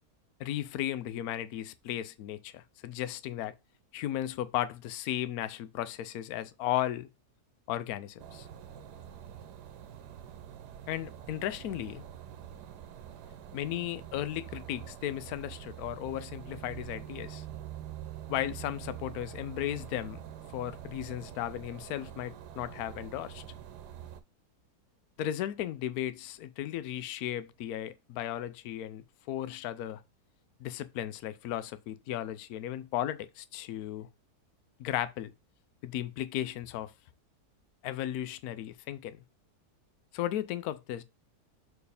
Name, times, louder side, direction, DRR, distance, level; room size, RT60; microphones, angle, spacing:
voice 1, 0.4-3.5 3.9-7.1 7.7-8.5 10.9-12.0 13.5-17.4 18.3-20.2 20.5-23.4 25.2-30.0 30.6-34.1 34.8-35.3 35.8-36.9 37.8-39.2 40.1-41.0, left 12 dB, 70° left, 1.1 m, -35 dB
sound 1, 8.2-24.2, right 10 dB, 80° right, 1.3 m, -45 dB
6.8 x 4.5 x 3.4 m
omnidirectional pair, 1.7 m